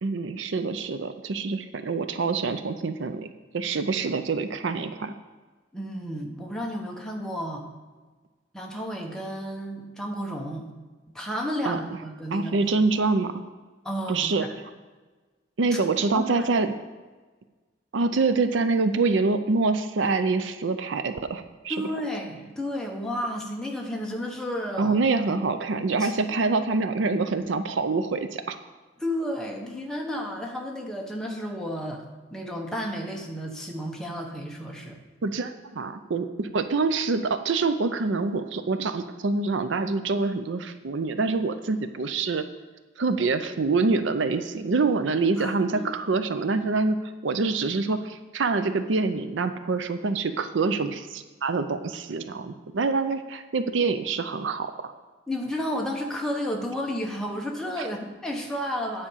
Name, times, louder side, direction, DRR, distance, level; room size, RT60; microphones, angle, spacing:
voice 1, 0.0-5.1 11.6-11.8 12.3-13.4 14.1-14.5 15.6-16.7 17.9-21.8 24.8-28.6 35.2-42.4 43.0-47.0 47.2-54.9 57.8-57.9, right 3 dB, 70° right, 10 dB, 0.5 m, -26 dB
voice 2, 5.7-7.7 8.5-10.7 11.1-12.5 13.8-14.5 15.7-15.8 16.1-16.5 21.7-25.0 26.0-26.1 29.0-35.0 45.4-45.9 55.3-59.1, equal, 5° left, -1 dB, 1.1 m, -32 dB
9.8 x 5.0 x 7.2 m, 1.3 s
head